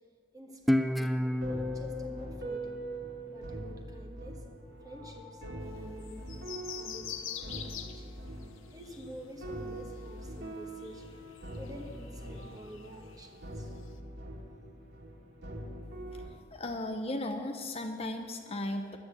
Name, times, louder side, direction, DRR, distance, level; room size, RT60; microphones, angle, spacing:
voice 1, 0.3-2.8 3.3-4.4 4.8-5.4 5.7-6.3 6.8-8.1 8.7-11.1 11.5-13.7, equal, 20° right, 4 dB, 1.1 m, -49 dB
Guitar, 0.7-3.9, equal, ahead, 0.3 m, -32 dB
sound 1, 1.1-16.3, equal, 55° right, 2.2 m, -43 dB
sound 2, 5.6-14.0, left 9 dB, 70° left, 0.8 m, -47 dB
voice 2, 16.5-19.0, left 1 dB, 30° left, 5 dB, 0.7 m, -36 dB
11.5 x 9.5 x 7.7 m, 2.1 s
head